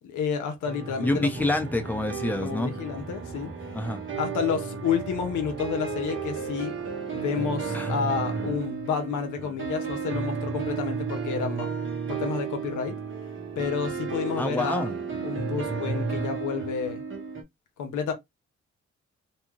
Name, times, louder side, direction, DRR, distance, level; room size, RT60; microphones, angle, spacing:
voice 1, 0.0-1.3 2.4-3.5 4.1-6.8 7.1-11.7 12.1-13.0 13.6-14.9 15.2-17.0 17.8-18.1, left 7 dB, 85° left, 0.8 m, -30 dB
sound 1, 0.6-17.4, right 5 dB, 40° right, 1.1 m, -33 dB
voice 2, 1.0-2.7 3.7-4.0 7.7-7.9 14.4-14.9, left 1 dB, 5° left, 0.8 m, -27 dB
2.7 x 2.3 x 3.0 m
supercardioid pair, 55°, 30 cm